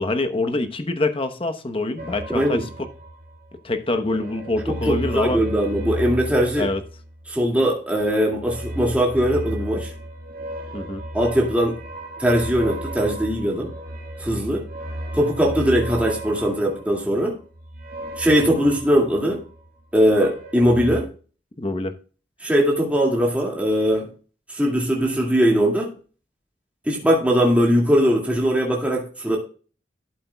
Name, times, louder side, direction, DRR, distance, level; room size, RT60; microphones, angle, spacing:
voice 1, 0.0-2.6 3.6-5.4 6.6-6.8 10.7-11.0 21.6-22.0, left 2 dB, 30° left, 0.9 m, -25 dB
sound 1, 2.0-3.6 3.9-7.5 8.3-19.7 20.0-21.0, right 1 dB, 55° right, 2.0 m, -34 dB
voice 2, 2.3-2.7 4.7-6.7 7.3-9.9 11.1-11.8 12.2-13.7 14.2-14.7 15.1-17.4 18.2-19.4 19.9-21.1 22.4-24.1 24.5-25.9 26.9-29.4, equal, 10° right, 2.1 m, -20 dB
12.0 x 8.4 x 2.3 m
head